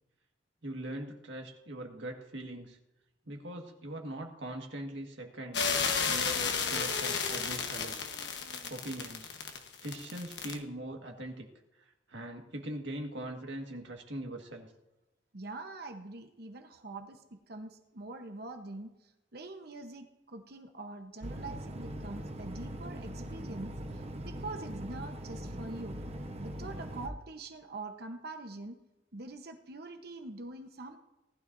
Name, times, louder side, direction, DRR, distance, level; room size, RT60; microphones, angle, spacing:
voice 1, 0.6-2.8 3.3-5.6 6.0-8.1 8.7-9.3 9.8-11.5 12.1-14.7, right 1 dB, 75° right, 2 dB, 1.8 m, -41 dB
sound 1, 5.5-10.6, left 5 dB, 65° left, 1.2 m, -32 dB
voice 2, 15.3-19.0 19.3-26.0 26.4-28.8 29.1-31.0, right 2 dB, 55° right, 6 dB, 1.0 m, -44 dB
sound 2, 21.2-27.1, right 1 dB, 35° right, 1.0 m, -41 dB
18.5 x 12.0 x 2.7 m, 0.97 s
head